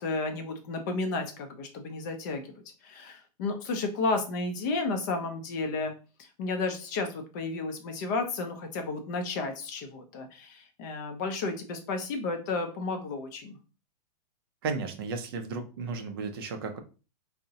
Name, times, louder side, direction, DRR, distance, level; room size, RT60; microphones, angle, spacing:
voice 1, 0.0-2.4 2.8-5.9 6.2-13.6, left 3 dB, 30° left, 5 dB, 0.4 m, -32 dB
voice 2, 14.6-16.8, right 4 dB, 35° right, 7 dB, 0.4 m, -34 dB
3.5 x 2.0 x 2.7 m, 0.34 s
hypercardioid pair, 165°, 21 cm